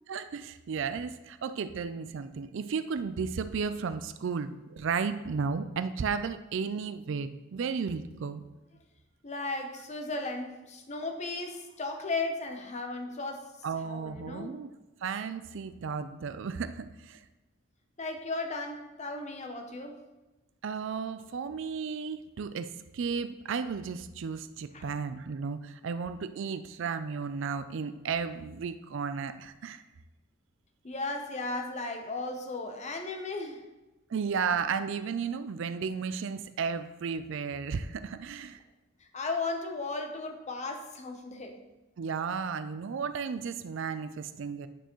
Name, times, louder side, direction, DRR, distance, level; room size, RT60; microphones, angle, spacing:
voice 1, 0.1-8.4 13.6-14.7 15.0-17.2 20.6-29.8 34.1-38.6 42.0-44.7, right 5 dB, 65° right, 12 dB, 0.4 m, -34 dB
voice 2, 9.2-14.6 18.0-20.0 24.7-24.9 30.8-33.6 39.0-41.5, left 3 dB, 35° left, 4 dB, 0.8 m, -36 dB
9.1 x 6.7 x 3.1 m, 1.1 s
head